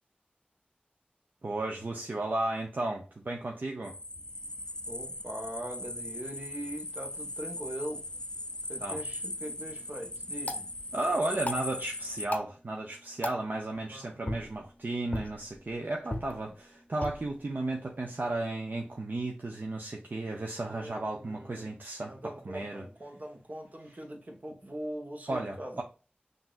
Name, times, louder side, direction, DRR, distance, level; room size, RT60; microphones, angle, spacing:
voice 1, 1.4-3.9 8.8-9.0 10.9-22.8 25.3-25.8, right 2 dB, 65° right, 0.6 m, -34 dB
sound 1, 3.8-12.3, left 1 dB, 25° left, 0.4 m, -39 dB
voice 2, 4.9-8.0 8.7-10.7 13.9-14.2 20.6-21.7 22.1-25.8, right 1 dB, 50° right, 1.1 m, -41 dB
sound 2, 9.3-19.4, left 1 dB, 45° left, 0.7 m, -42 dB
5.9 x 2.7 x 2.4 m
wide cardioid pair, 60°, 3 cm